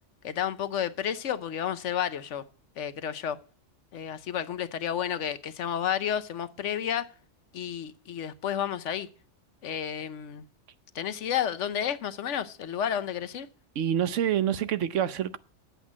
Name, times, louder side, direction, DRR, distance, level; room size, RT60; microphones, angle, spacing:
voice 1, 0.2-2.4 2.8-3.4 3.9-7.1 7.5-9.1 9.6-10.4 10.9-13.5, left 9 dB, 75° left, 1.1 m, -31 dB
voice 2, 13.7-15.4, right 10 dB, 80° right, 1.1 m, -27 dB
10.5 x 8.1 x 7.3 m
omnidirectional pair, 1.2 m